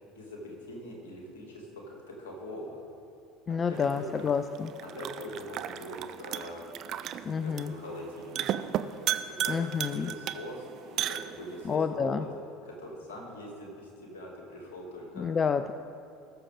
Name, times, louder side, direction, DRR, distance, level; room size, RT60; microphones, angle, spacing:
voice 1, 0.0-2.8 3.5-4.3 4.8-6.6 7.0-8.5 9.2-12.3 12.6-15.3, left 1 dB, 70° left, -1 dB, 2.4 m, -42 dB
voice 2, 3.5-4.7 7.2-7.7 9.5-10.1 11.7-12.2 15.2-15.7, left 6 dB, 30° left, 10 dB, 0.4 m, -29 dB
sound 1, 3.7-11.7, right 11 dB, 50° right, 0.5 m, -36 dB
19.0 x 6.8 x 3.6 m, 2.5 s
figure-of-eight pair, 65°, 0 cm